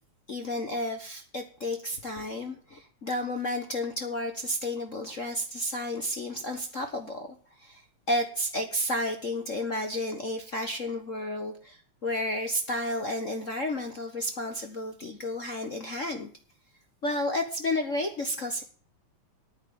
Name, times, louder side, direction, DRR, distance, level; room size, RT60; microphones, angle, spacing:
voice 1, 0.3-7.3 7.6-16.3 17.0-18.6, left 1 dB, 45° left, 6 dB, 1.0 m, -32 dB
9.7 x 9.3 x 9.5 m, 0.43 s
omnidirectional pair, 3.4 m